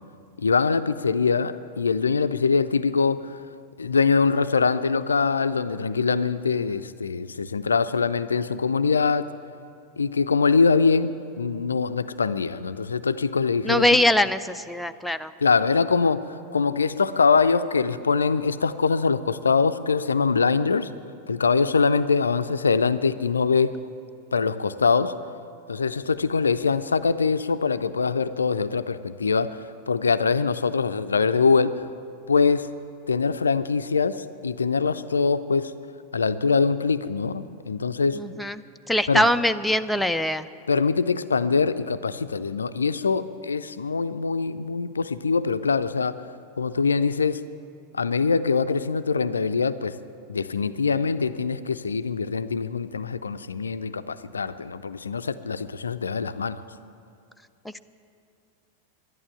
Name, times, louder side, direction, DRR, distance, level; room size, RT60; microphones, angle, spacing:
voice 1, 0.4-3.4 3.8-9.2 10.0-14.0 15.4-16.2 16.5-20.9 21.3-23.8 24.3-25.2 25.7-31.9 32.3-32.7 33.1-35.7 36.1-38.2 39.1-39.3 40.7-46.1 46.6-47.4 47.9-49.9 50.3-56.6, left 5 dB, 75° left, 13 dB, 0.4 m, -23 dB
voice 2, 13.6-15.3 38.1-38.6 38.9-40.5, left 1 dB, ahead, 8 dB, 0.4 m, -22 dB
11.5 x 11.0 x 8.8 m, 2.7 s
figure-of-eight pair, 90°, 0 cm